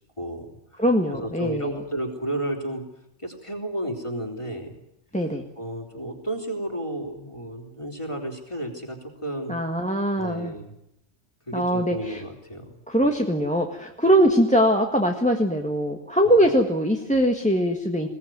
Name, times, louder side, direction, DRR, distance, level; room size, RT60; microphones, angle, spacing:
voice 1, 0.2-0.8 1.1-2.8 3.2-4.7 5.6-9.6 10.2-10.7 11.5-12.7 16.2-16.5, right 1 dB, 25° left, 2 dB, 4.0 m, -32 dB
voice 2, 0.8-1.8 5.1-5.4 9.5-10.5 11.5-12.2 12.9-18.1, equal, 5° left, 2 dB, 1.6 m, -22 dB
21.5 x 18.0 x 9.4 m, 0.82 s
omnidirectional pair, 1.2 m